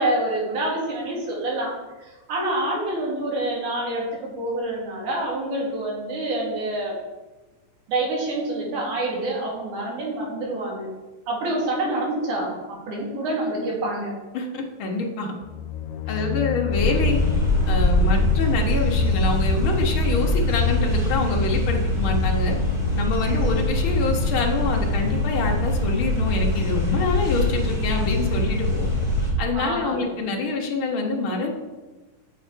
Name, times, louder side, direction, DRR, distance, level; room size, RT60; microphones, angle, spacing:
voice 1, 0.0-7.0 7.9-10.9 11.3-14.1 16.1-16.3 29.5-30.1, right 1 dB, 65° right, -3 dB, 3.6 m, -27 dB
voice 2, 14.8-15.3 16.1-17.2 17.7-22.6 23.0-28.9 29.4-31.5, left 3 dB, 65° left, 0 dB, 1.3 m, -26 dB
sound 1, 15.4-23.1, left 5 dB, 80° left, 2.1 m, -30 dB
sound 2, 16.7-29.3, left 1 dB, 15° right, 2.5 m, -23 dB
7.4 x 7.2 x 4.6 m, 1.1 s
omnidirectional pair, 3.9 m